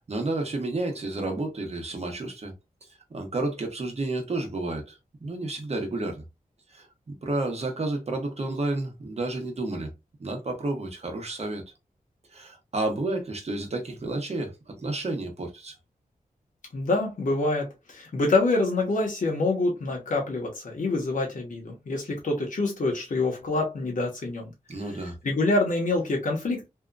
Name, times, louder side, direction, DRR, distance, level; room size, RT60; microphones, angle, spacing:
voice 1, 0.1-2.5 3.1-6.2 6.7-9.9 10.2-11.6 12.3-15.7 24.7-25.2, right 2 dB, 45° right, 0.9 m, -31 dB
voice 2, 16.7-24.5 25.2-26.7, left 2 dB, 60° left, 1.0 m, -26 dB
2.8 x 2.4 x 2.3 m
wide cardioid pair, 115°, 15 cm